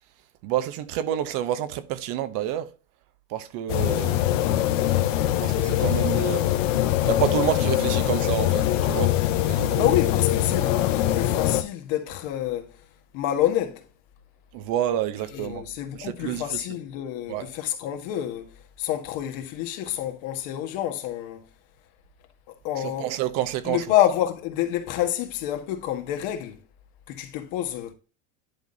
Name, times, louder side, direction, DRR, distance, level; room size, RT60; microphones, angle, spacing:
voice 1, 0.4-2.7 3.3-4.2 5.4-6.4 7.1-9.1 9.5-10.0 14.5-15.6 16.0-16.6 17.3-17.5 22.8-23.9, right 11 dB, 60° right, 1.1 m, -28 dB
sound 1, 3.7-11.6, left 13 dB, 80° left, 1.1 m, -23 dB
voice 2, 9.8-12.8 13.1-13.8 15.3-18.5 18.8-21.4 22.6-23.1 23.6-26.6 27.1-27.9, left 12 dB, 60° left, 1.7 m, -28 dB
10.5 x 3.8 x 3.9 m
supercardioid pair, 105°, 38 cm